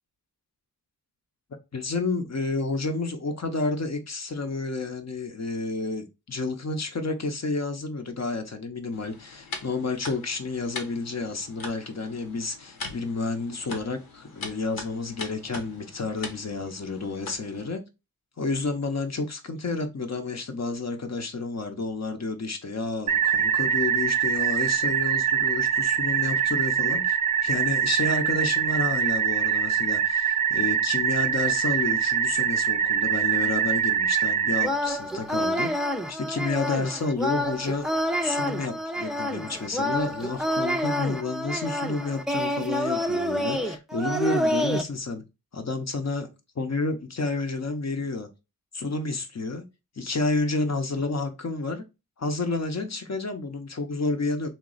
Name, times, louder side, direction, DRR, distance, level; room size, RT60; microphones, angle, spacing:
voice 1, 1.7-17.8 18.4-27.2 27.4-35.7 36.1-37.9 38.2-45.2 45.5-46.3 46.6-48.3 48.7-49.6 50.0-51.8 52.2-54.5, left 3 dB, 50° left, 0.7 m, -30 dB
sound 1, 8.9-17.7, left 3 dB, 80° left, 0.9 m, -41 dB
sound 2, 23.1-34.7, right 8 dB, 65° right, 0.5 m, -24 dB
sound 3, 34.6-44.8, equal, ahead, 0.4 m, -28 dB
3.1 x 2.3 x 3.7 m
wide cardioid pair, 65°, 35 cm